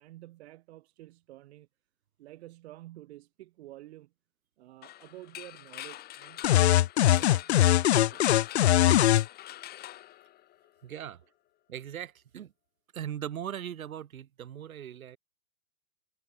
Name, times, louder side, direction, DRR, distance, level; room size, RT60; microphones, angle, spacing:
voice 1, 0.0-1.7 2.2-4.1 4.6-6.5 7.1-8.2 8.8-9.1, right 16 dB, 45° right, 4.7 m, -50 dB
sound 1, 4.8-10.8, left 14 dB, 20° left, 4.2 m, -45 dB
sound 2, 6.4-9.3, left 13 dB, 45° left, 0.6 m, -21 dB
voice 2, 10.8-11.2 11.7-12.5 12.9-15.2, right 10 dB, 65° right, 2.9 m, -39 dB
hypercardioid pair, 140°, 45 cm